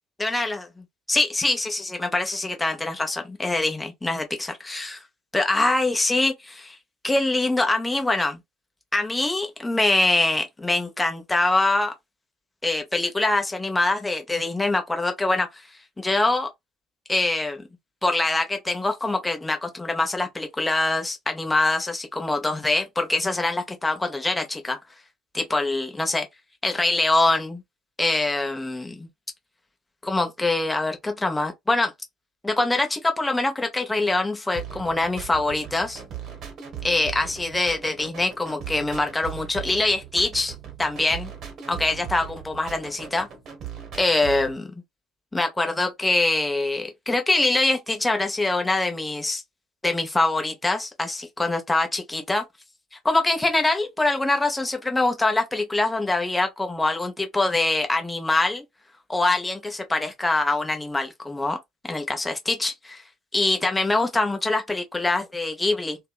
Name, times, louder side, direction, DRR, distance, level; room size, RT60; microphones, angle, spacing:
voice 1, 0.2-0.6 1.1-5.0 5.3-6.8 7.0-8.4 8.9-11.9 12.6-15.5 16.0-16.5 17.1-17.6 18.0-24.8 25.3-26.3 26.6-27.6 28.0-29.1 30.0-31.9 32.4-36.0 36.8-40.5 40.8-41.3 41.7-43.3 43.9-44.7 45.3-49.4 49.8-52.4 53.0-58.6 59.1-61.6 61.8-63.0 63.3-66.0, left 2 dB, 15° left, 0.8 m, -24 dB
sound 1, 34.5-44.6, right 9 dB, 50° right, 0.9 m, -38 dB
2.7 x 2.1 x 2.3 m
figure-of-eight pair, 60°, 0 cm